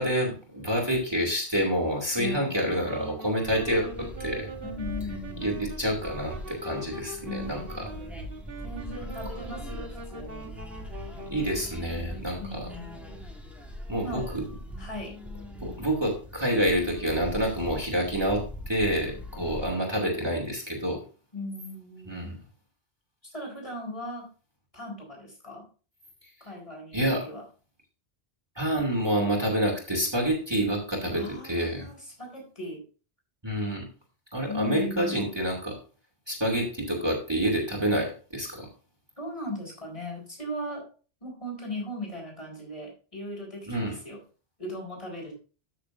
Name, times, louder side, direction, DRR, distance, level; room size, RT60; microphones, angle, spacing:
voice 1, 0.0-4.5 5.4-7.8 11.3-12.7 13.9-14.4 15.6-21.0 22.1-22.3 26.9-27.2 28.6-31.9 33.4-33.9 34.3-35.8 36.3-38.7 43.7-44.0, equal, 25° right, 0 dB, 2.6 m, -28 dB
voice 2, 2.1-2.6 4.6-5.5 7.2-7.9 8.6-10.5 12.4-13.2 14.0-14.3 14.8-15.1 18.9-19.6 21.3-22.3 23.3-24.3 24.7-25.6 26.4-27.4 31.1-32.8 34.5-35.2 39.2-40.8 41.2-44.2 44.6-45.3, left 1 dB, 30° left, 0 dB, 4.4 m, -38 dB
Wind instrument woodwind instrument, 2.1-11.8, right 1 dB, 60° right, 1.8 m, -42 dB
sound 1, 3.4-19.6, equal, ahead, 2.0 m, -41 dB
13.5 x 6.7 x 2.6 m, 0.36 s
omnidirectional pair, 1.1 m